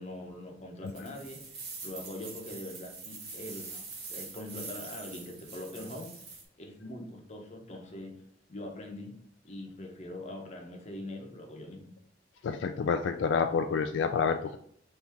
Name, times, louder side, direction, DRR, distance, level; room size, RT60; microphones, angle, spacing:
voice 1, 0.0-3.8 4.1-6.1 6.6-8.1 8.5-9.2 9.4-11.9, left 1 dB, 40° left, 2 dB, 0.9 m, -42 dB
sound 1, 0.9-6.4, right 4 dB, 60° right, 1.2 m, -44 dB
voice 2, 12.4-14.6, left 5 dB, 80° left, 6 dB, 0.3 m, -28 dB
4.3 x 2.8 x 3.4 m, 0.63 s
head